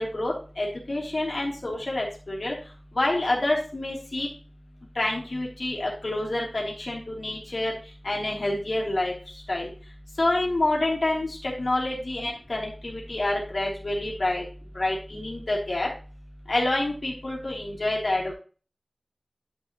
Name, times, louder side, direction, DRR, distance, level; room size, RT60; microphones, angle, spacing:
voice 1, 0.0-2.5 2.9-4.3 4.9-7.7 8.0-9.1 9.5-9.7 10.2-14.4 14.7-15.9 16.5-18.3, left 2 dB, 85° left, -3 dB, 3.1 m, -27 dB
11.0 x 6.5 x 3.0 m, 0.37 s
wide cardioid pair, 50°, 0 cm